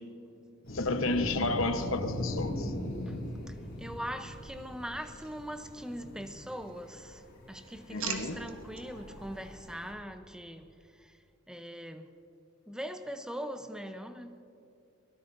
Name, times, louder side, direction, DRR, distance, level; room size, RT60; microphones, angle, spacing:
sound 1, 0.6-9.9, left 1 dB, 50° left, 4.5 m, -40 dB
voice 1, 0.7-2.7 7.9-8.4, left 2 dB, 70° left, 1.0 m, -31 dB
voice 2, 3.5-10.7 10.9-11.2 11.5-12.1 12.7-14.4, equal, 5° right, 0.7 m, -41 dB
sound 2, 4.9-6.0 6.4-7.1 7.4-8.9 9.4-9.7, right 8 dB, 85° right, 1.3 m, -44 dB
23.0 x 18.5 x 2.6 m
head